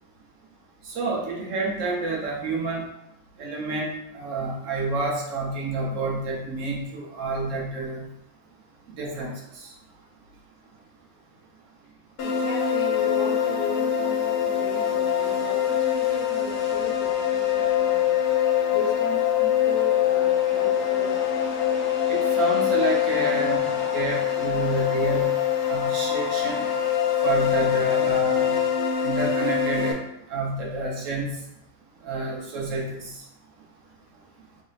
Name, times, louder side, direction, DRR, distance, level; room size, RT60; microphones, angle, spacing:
voice 1, 1.0-2.8 3.4-3.9 4.1-8.0 9.0-9.3 22.1-23.7 23.9-25.3 25.7-26.6 27.2-28.5 29.0-30.0 30.3-31.3 32.0-33.1, right 3 dB, 60° right, -2 dB, 1.1 m, -29 dB
sound 1, 12.2-29.9, left 9 dB, 85° left, 1.2 m, -24 dB
voice 2, 12.2-18.1 18.7-21.2, left 4 dB, 60° left, -2 dB, 0.9 m, -37 dB
3.2 x 2.0 x 3.9 m, 0.81 s
omnidirectional pair, 1.6 m